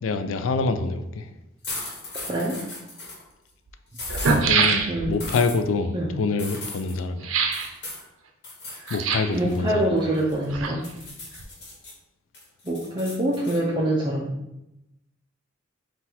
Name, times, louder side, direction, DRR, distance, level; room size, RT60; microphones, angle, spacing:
voice 1, 0.0-1.3 4.4-7.3 8.9-9.9, left 4 dB, 75° left, 0.4 m, -26 dB
sound 1, 1.6-3.2 3.9-4.4 5.2-5.6 6.4-6.9 7.5-8.0 8.4-9.0 9.3-10.4 10.8-11.9 12.3-13.6, left 2 dB, 60° left, 1.2 m, -37 dB
voice 2, 2.3-2.6 4.9-5.2 5.9-6.1 8.7-8.8 9.3-10.8 12.6-14.3, right 1 dB, 25° right, 0.5 m, -25 dB
sound 2, 2.7-2.8 3.7-3.8 4.0-5.2 7.2-7.7 8.9-9.4 10.3-11.1 11.3-11.4, right 4 dB, 85° right, 0.5 m, -24 dB
3.9 x 2.4 x 4.2 m
head